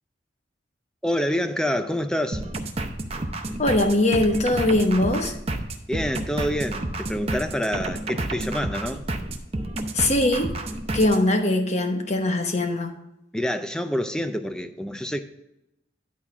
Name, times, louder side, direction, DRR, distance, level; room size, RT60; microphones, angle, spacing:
voice 1, 1.0-2.4 5.9-9.0 13.3-15.2, equal, 5° left, 9 dB, 0.4 m, -27 dB
sound 1, 2.3-11.2, right 2 dB, 30° right, 0.7 m, -30 dB
voice 2, 3.6-5.3 9.9-10.5 10.9-12.9, left 2 dB, 35° left, 5 dB, 1.0 m, -21 dB
11.0 x 4.1 x 5.8 m, 0.88 s
head